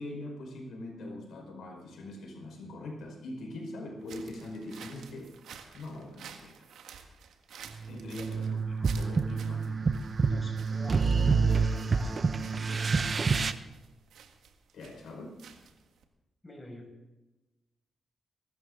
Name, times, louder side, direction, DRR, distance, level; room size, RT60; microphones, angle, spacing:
voice 1, 0.0-5.3 5.7-6.6 7.9-9.8 14.7-15.4, left 1 dB, 75° left, 2 dB, 5.0 m, -42 dB
sound 1, 4.0-16.0, right 7 dB, 85° right, 1.7 m, -52 dB
sound 2, 7.7-13.5, right 4 dB, 50° right, 0.9 m, -28 dB
voice 2, 10.2-13.2 16.4-16.9, left 1 dB, 20° left, 1 dB, 6.0 m, -47 dB
23.0 x 13.0 x 3.8 m, 1.0 s
cardioid pair, 60°, 0 cm